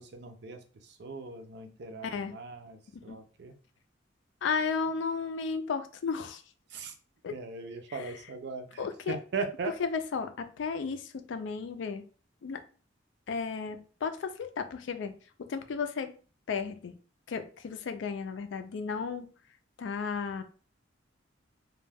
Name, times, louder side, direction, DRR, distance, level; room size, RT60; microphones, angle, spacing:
voice 1, 0.0-3.5 6.7-6.9 7.3-9.7, right 4 dB, 60° right, 7 dB, 0.4 m, -39 dB
voice 2, 2.0-2.3 3.1-3.2 4.4-6.4 7.2-7.3 7.9-8.1 8.8-9.2 9.8-12.0 12.4-12.6 13.3-15.1 15.4-16.1 16.5-16.9 17.3-19.3 19.8-20.4, left 5 dB, 75° left, 8 dB, 0.4 m, -34 dB
2.2 x 2.1 x 3.3 m, 0.39 s
head